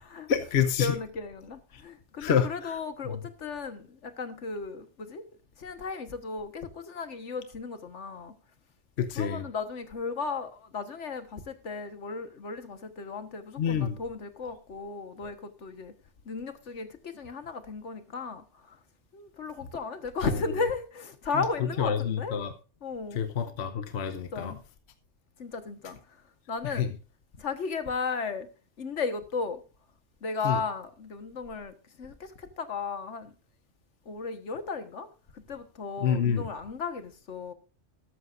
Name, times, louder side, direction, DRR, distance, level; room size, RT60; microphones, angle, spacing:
voice 1, 0.3-0.9 2.2-2.7 3.1-3.2 9.0-9.4 13.6-14.0 21.8-22.5 23.1-24.5 26.6-26.9 30.4-30.6 36.0-36.5, left 8 dB, 65° left, 1.1 m, -27 dB
voice 2, 0.8-5.2 5.6-8.3 9.1-15.9 16.2-18.8 19.1-22.4 22.8-23.3 24.1-24.6 25.4-26.2 26.5-26.9 27.4-28.5 28.8-29.6 30.2-33.3 34.0-35.1 35.3-37.5, left 4 dB, 85° left, 1.6 m, -35 dB
13.5 x 13.0 x 2.5 m
omnidirectional pair, 1.2 m